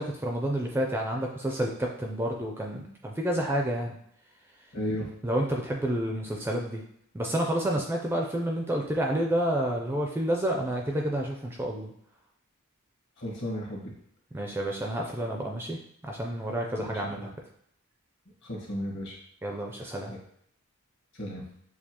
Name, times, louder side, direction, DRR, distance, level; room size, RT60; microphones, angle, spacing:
voice 1, 0.0-4.0 5.2-6.8 7.1-11.9 14.3-15.8 16.0-17.3 19.4-20.1, right 1 dB, 10° right, 0 dB, 0.4 m, -29 dB
voice 2, 4.7-5.1 13.2-13.9 16.8-17.3 18.4-19.1 20.1-20.2 21.2-21.4, equal, 55° left, -1 dB, 1.3 m, -34 dB
6.6 x 2.3 x 2.8 m, 0.69 s
head